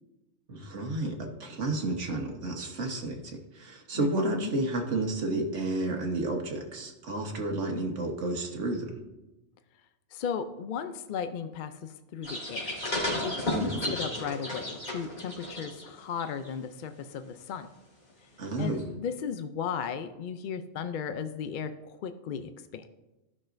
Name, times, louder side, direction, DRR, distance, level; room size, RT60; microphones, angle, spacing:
voice 1, 0.5-8.9 13.5-14.0 18.4-18.8, right 2 dB, 80° right, 2 dB, 1.5 m, -31 dB
voice 2, 3.9-4.5 10.1-12.7 13.2-17.7 18.2-18.3 18.6-22.9, left 7 dB, 60° left, 9 dB, 0.5 m, -36 dB
sound 1, 12.2-15.9 16.2-16.5 18.8-18.9, left 1 dB, 35° left, 2.7 m, -33 dB
14.0 x 6.1 x 2.6 m, 1.0 s
omnidirectional pair, 1.2 m